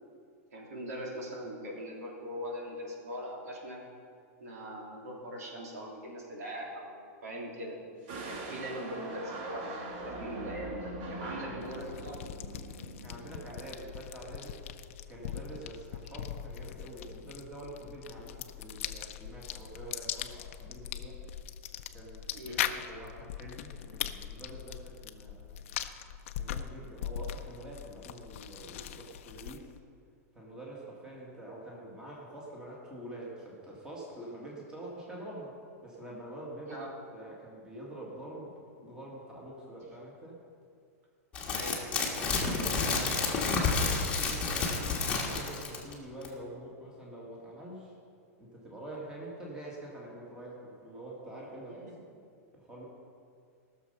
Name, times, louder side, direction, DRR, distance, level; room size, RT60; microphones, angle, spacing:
voice 1, 0.5-3.8 4.4-7.8 8.3-12.2 12.5-12.6 22.3-22.6 36.7-36.9 41.5-41.8 42.8-43.3 51.7-52.0, equal, 90° right, -2 dB, 3.2 m, -41 dB
sound 1, 8.1-13.7, right 2 dB, 40° right, 1.6 m, -42 dB
sound 2, 11.6-29.8, left 10 dB, 55° left, 0.6 m, -40 dB
voice 2, 13.0-14.5 15.1-21.2 21.9-25.6 26.4-29.7 30.4-35.5 35.8-36.8 37.1-40.4 42.2-47.9 48.4-51.9 52.5-52.9, right 1 dB, 10° right, -4 dB, 2.0 m, -46 dB
sound 3, 41.3-45.9 46.2-46.3, left 4 dB, 15° left, 1.4 m, -30 dB
18.0 x 6.7 x 5.6 m, 2.2 s
supercardioid pair, 170°, 8 cm